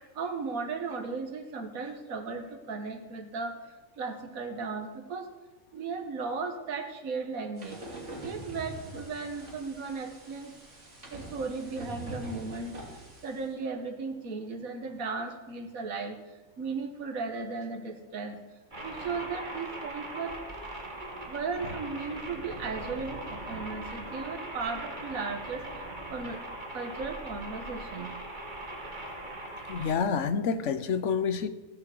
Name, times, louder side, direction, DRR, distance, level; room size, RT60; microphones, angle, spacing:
voice 1, 0.0-3.6 4.0-5.3 5.7-7.8 8.2-10.5 11.1-12.8 13.2-16.2 16.6-18.4 18.8-20.4 21.3-25.7 26.1-26.4 26.7-28.1, right 4 dB, 80° right, 5 dB, 1.8 m, -36 dB
sound 1, 7.6-13.5, right 1 dB, 60° right, 3.1 m, -44 dB
sound 2, 18.7-29.9, right 1 dB, 35° right, 2.4 m, -40 dB
voice 2, 29.7-31.5, left 6 dB, 60° left, 12 dB, 1.2 m, -28 dB
14.5 x 8.6 x 7.7 m, 1.2 s
omnidirectional pair, 1.4 m